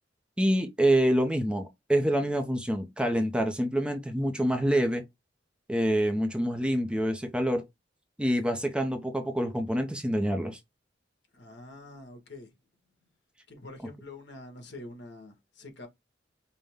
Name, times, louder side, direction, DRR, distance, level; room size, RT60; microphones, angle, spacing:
voice 1, 0.4-5.0 5.7-7.6 8.2-10.6, right 1 dB, 5° right, 0.6 m, -26 dB
voice 2, 11.3-12.5 13.5-15.9, left 2 dB, 65° left, 1.4 m, -46 dB
5.4 x 2.2 x 3.4 m
head